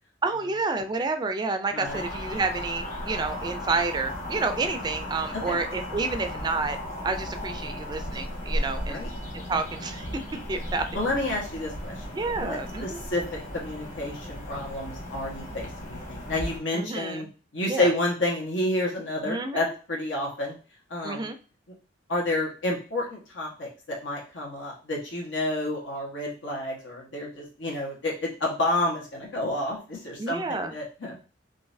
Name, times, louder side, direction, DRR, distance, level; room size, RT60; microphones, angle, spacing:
voice 1, 0.2-6.8 7.0-9.0 9.3-10.1 10.5-10.9 12.1-13.0 16.7-17.3 17.7-17.9 19.2-19.6 21.0-21.4 30.2-30.7, right 3 dB, 25° right, 8 dB, 0.3 m, -29 dB
voice 2, 1.7-2.0 5.5-5.6 8.9-9.1 10.9-12.0 12.3-17.3 17.5-20.6 20.9-21.2 22.1-31.2, left 1 dB, 90° left, -2 dB, 1.3 m, -30 dB
sound 1, 1.8-16.6, equal, 40° left, 1.3 m, -35 dB
3.8 x 2.6 x 2.6 m, 0.36 s
head